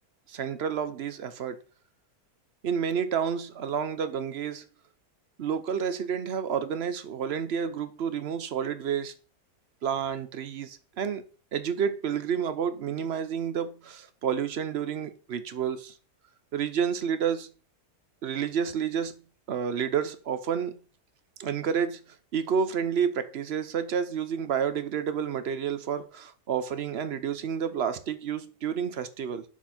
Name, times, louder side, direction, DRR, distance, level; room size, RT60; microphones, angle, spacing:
voice 1, 0.3-1.6 2.6-4.6 5.4-9.1 9.8-11.2 11.5-15.9 16.5-17.5 18.2-19.1 19.5-20.7 21.4-22.0 22.3-29.4, right 7 dB, 55° right, 0.8 m, -30 dB
6.9 x 4.5 x 4.3 m
omnidirectional pair, 1.6 m